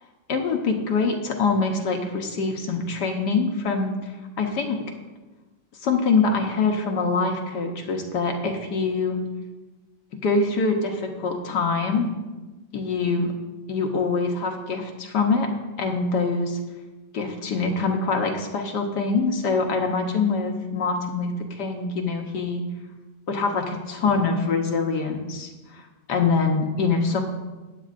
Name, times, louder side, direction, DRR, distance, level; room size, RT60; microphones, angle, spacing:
voice 1, 0.3-4.1 4.4-4.8 5.8-9.2 10.2-12.1 12.7-13.3 13.7-15.5 15.8-16.6 17.1-22.6 23.3-27.2, left 4 dB, 65° left, 3 dB, 1.5 m, -24 dB
13.5 x 9.3 x 2.5 m, 1.2 s
omnidirectional pair, 2.1 m